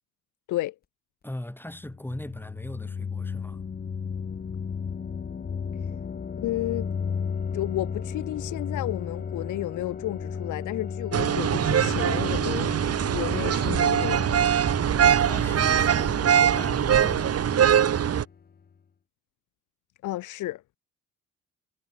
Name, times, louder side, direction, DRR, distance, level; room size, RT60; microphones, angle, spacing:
voice 1, 1.2-3.6 15.0-17.8, left 1 dB, 5° left, 5.5 m, -39 dB
sound 1, 1.7-18.4, left 6 dB, 30° left, 1.0 m, -35 dB
voice 2, 6.4-6.9 7.5-14.5 20.0-20.6, left 16 dB, 85° left, 1.2 m, -32 dB
sound 2, 11.1-18.2, right 9 dB, 55° right, 1.9 m, -22 dB
cardioid pair, 90°, 30 cm